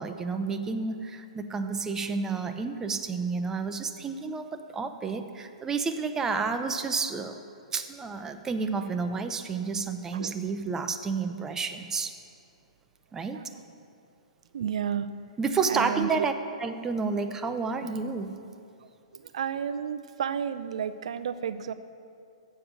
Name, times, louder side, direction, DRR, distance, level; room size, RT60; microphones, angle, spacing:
voice 1, 0.0-4.5 4.7-7.4 7.7-12.1 13.1-13.4 15.4-16.3 16.6-18.4, right 4 dB, 15° right, 7 dB, 0.6 m, -30 dB
voice 2, 14.5-15.1 15.7-16.3 19.1-21.7, right 8 dB, 65° right, 12 dB, 0.5 m, -31 dB
7.7 x 6.6 x 8.0 m, 2.5 s
hypercardioid pair, 120°, 4 cm